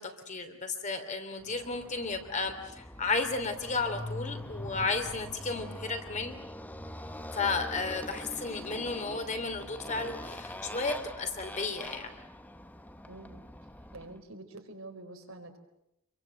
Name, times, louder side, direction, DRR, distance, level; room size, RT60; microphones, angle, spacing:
voice 1, 0.0-6.3 7.3-12.2, left 3 dB, 35° left, 6 dB, 3.1 m, -33 dB
Motorcycle, 1.5-14.2, left 1 dB, 10° left, 1.0 m, -43 dB
voice 2, 13.1-13.5 13.9-15.6, right 2 dB, 90° right, 4 dB, 4.4 m, -46 dB
27.5 x 23.5 x 7.8 m, 0.84 s
head